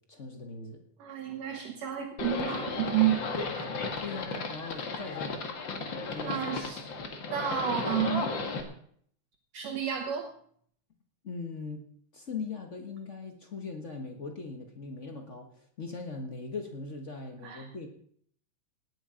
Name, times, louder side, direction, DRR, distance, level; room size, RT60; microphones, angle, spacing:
voice 1, 0.1-0.8 4.0-5.5 5.8-6.7 11.2-11.9 12.1-17.9, left 4 dB, 75° left, 4 dB, 0.6 m, -40 dB
voice 2, 1.0-3.2 3.6-3.7 6.2-6.8 7.3-8.4 9.5-10.3 17.4-17.7, right 11 dB, 60° right, 3 dB, 2.3 m, -31 dB
Livestock farm animals working animals, 2.2-8.6, left 4 dB, 45° left, 1.9 m, -34 dB
18.0 x 10.0 x 5.0 m, 0.63 s
omnidirectional pair, 3.7 m